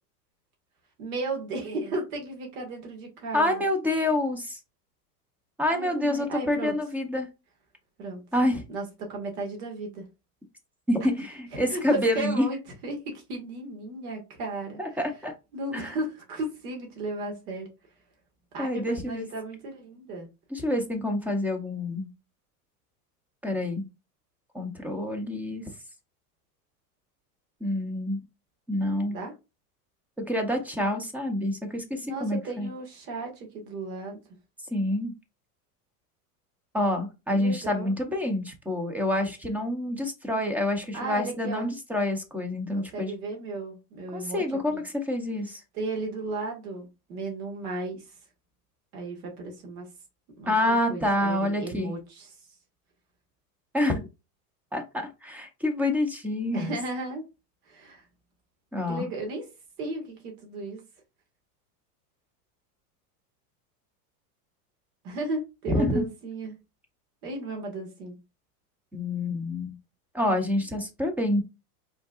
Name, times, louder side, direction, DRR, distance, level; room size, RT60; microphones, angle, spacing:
voice 1, 1.0-3.5 5.7-6.8 8.0-8.2 8.7-10.0 11.7-15.0 15.5-17.7 18.5-20.3 28.8-29.3 32.0-34.2 37.3-37.9 40.9-41.7 42.7-44.8 45.7-48.1 48.9-49.9 50.4-52.3 56.5-57.2 57.7-58.0 58.9-59.5 59.8-60.8 65.0-66.6 67.2-68.2, right 2 dB, 70° right, 2.0 m, -35 dB
voice 2, 3.3-4.6 5.6-7.3 8.3-8.6 10.9-12.4 14.8-15.3 15.7-15.9 18.6-19.3 20.5-22.1 23.4-23.8 24.5-25.6 27.6-28.2 28.7-29.1 30.3-32.7 34.7-35.1 36.7-43.1 44.1-45.6 50.5-51.9 53.7-54.1 54.7-56.8 58.7-59.1 65.7-66.0 68.9-69.8 70.1-71.4, left 1 dB, 5° right, 0.6 m, -27 dB
5.1 x 3.8 x 2.4 m
supercardioid pair, 140°, 46 cm